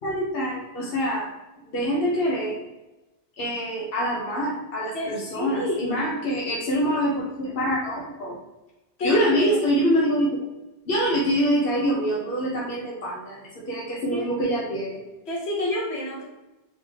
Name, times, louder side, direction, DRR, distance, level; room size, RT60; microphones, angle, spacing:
voice 1, 0.0-1.3 1.7-2.6 3.4-8.4 9.0-10.4 10.9-15.0, equal, 65° left, -4 dB, 1.1 m, -25 dB
voice 2, 4.9-6.0 9.0-9.6 14.1-14.3 15.3-16.2, left 1 dB, 80° left, -4 dB, 1.5 m, -28 dB
4.0 x 3.3 x 3.5 m, 1.0 s
omnidirectional pair, 1.1 m